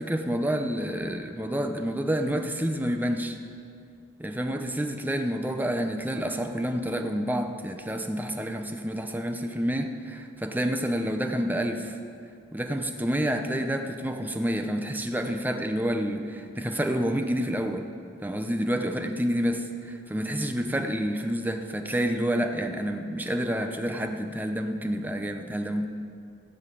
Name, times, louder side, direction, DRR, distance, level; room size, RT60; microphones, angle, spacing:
voice 1, 0.0-3.4 4.2-12.0 12.5-17.9 18.2-25.9, equal, 10° right, 5 dB, 0.8 m, -28 dB
16.5 x 5.7 x 8.5 m, 2.4 s
head